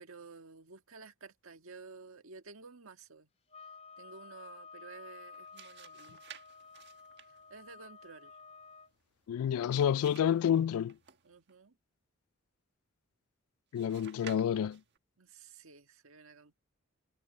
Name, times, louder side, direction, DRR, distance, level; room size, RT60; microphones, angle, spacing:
voice 1, 0.0-3.3 4.0-6.2 7.3-8.4 11.2-11.8 15.2-16.5, right 4 dB, 70° right, 1.7 m, -52 dB
sound 1, 3.5-8.9, left 5 dB, 30° left, 2.7 m, -52 dB
sound 2, 5.2-11.6 13.7-15.0, right 9 dB, 55° right, 1.5 m, -55 dB
voice 2, 9.3-11.0 13.7-14.8, left 9 dB, 85° left, 0.3 m, -29 dB
head